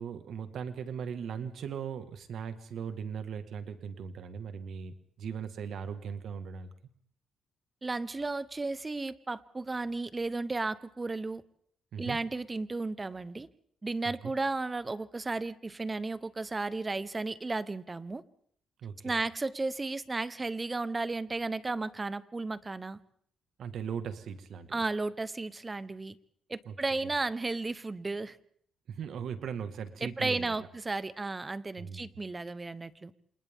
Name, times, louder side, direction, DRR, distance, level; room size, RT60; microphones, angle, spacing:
voice 1, 0.0-6.7 11.9-12.2 14.0-14.3 18.8-19.2 23.6-24.8 26.7-26.8 27.0-27.1 28.9-30.7 31.8-32.0, right 7 dB, 65° right, 9 dB, 1.8 m, -39 dB
voice 2, 7.8-11.4 12.0-13.5 13.8-18.2 19.0-23.0 24.7-26.2 26.5-28.4 30.0-33.1, right 3 dB, 25° right, 15 dB, 1.1 m, -34 dB
29.0 x 27.0 x 3.7 m, 0.63 s
cardioid pair, 90°, 0 cm